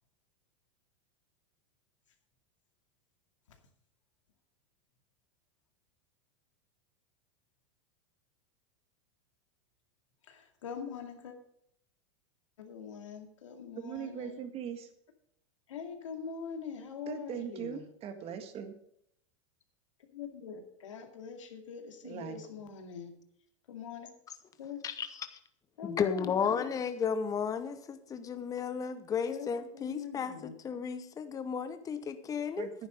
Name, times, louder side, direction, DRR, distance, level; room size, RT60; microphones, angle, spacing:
voice 1, 10.2-11.4 12.6-14.4 15.7-17.9 20.1-23.1 23.7-24.1 24.6-24.8 25.8-26.3 29.3-29.5 29.7-30.5, left 6 dB, 90° left, 2.4 m, -43 dB
voice 2, 13.8-14.9 17.1-18.8 22.0-22.4 32.6-32.9, right 8 dB, 40° right, 1.7 m, -40 dB
voice 3, 25.8-32.7, left 6 dB, 20° left, 0.9 m, -33 dB
10.0 x 10.0 x 5.3 m
hypercardioid pair, 120°, 16 cm